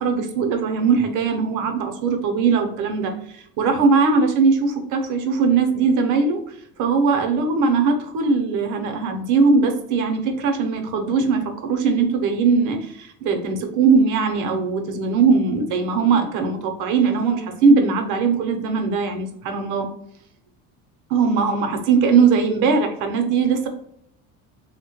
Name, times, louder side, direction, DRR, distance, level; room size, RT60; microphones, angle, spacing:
voice 1, 0.0-6.4 6.8-19.9 21.1-23.7, right 5 dB, 65° right, 5 dB, 0.7 m, -20 dB
3.1 x 2.1 x 2.9 m, 0.73 s
cardioid pair, 125°, 33 cm